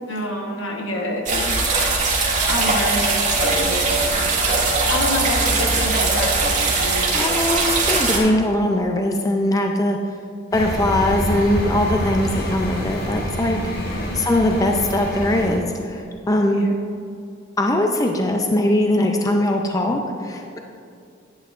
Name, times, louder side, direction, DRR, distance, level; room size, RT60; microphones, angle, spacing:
voice 1, 0.1-2.1 2.5-4.3 4.9-7.3 13.9-14.2 16.5-16.7, left 1 dB, 75° left, 1 dB, 1.2 m, -28 dB
sound 1, 1.3-8.2, right 3 dB, 40° right, 1.6 m, -20 dB
voice 2, 7.1-10.0 10.5-13.6 14.1-16.7 17.6-20.6, left 1 dB, 20° left, 3 dB, 0.4 m, -21 dB
sound 2, 10.5-15.6, left 1 dB, 55° left, 1.3 m, -27 dB
11.0 x 8.7 x 2.5 m, 2.4 s
head